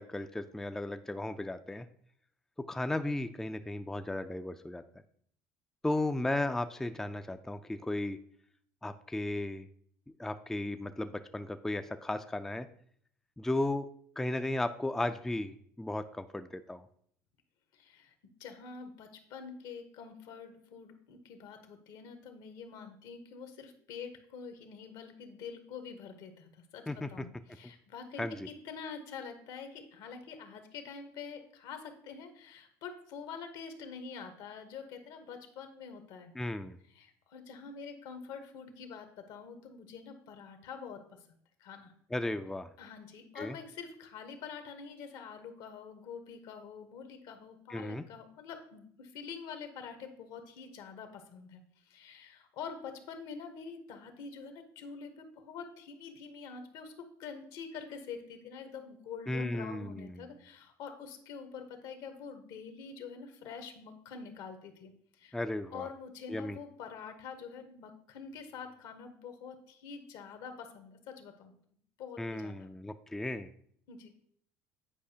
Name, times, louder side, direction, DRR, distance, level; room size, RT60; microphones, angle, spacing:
voice 1, 0.0-1.9 2.7-4.8 5.8-8.2 8.8-9.7 10.2-12.7 13.4-13.9 14.2-16.8 26.9-27.1 28.2-28.5 36.4-36.8 42.1-42.7 43.4-43.6 47.7-48.0 59.3-60.3 65.3-65.9 66.3-66.6 72.2-73.5, left 1 dB, 5° left, 9 dB, 0.3 m, -35 dB
voice 2, 17.7-18.1 18.4-26.8 27.1-36.3 36.9-41.0 41.6-41.9 42.8-56.9 57.2-65.3 65.7-71.5 72.0-72.7 73.9-74.1, left 6 dB, 70° left, 7 dB, 1.0 m, -46 dB
8.7 x 4.8 x 2.7 m, 0.64 s
hypercardioid pair, 75°, 8 cm